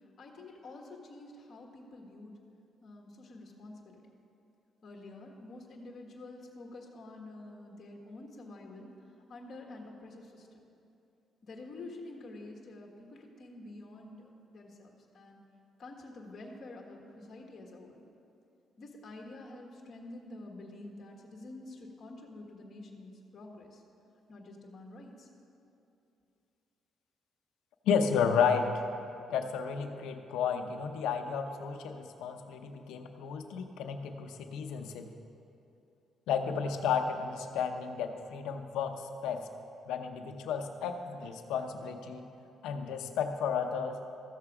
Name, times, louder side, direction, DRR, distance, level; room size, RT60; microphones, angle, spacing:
voice 1, 0.2-2.4 2.8-4.0 4.8-8.9 9.3-10.6 11.4-15.4 15.8-18.0 18.8-23.8 24.3-25.3, left 2 dB, 50° left, 0 dB, 1.5 m, -48 dB
voice 2, 27.9-28.8 29.3-35.1 36.3-39.4 39.9-42.3 42.6-44.0, left 6 dB, 90° left, 6 dB, 0.7 m, -32 dB
14.0 x 6.7 x 4.9 m, 2.7 s
cardioid pair, 90°, 0 cm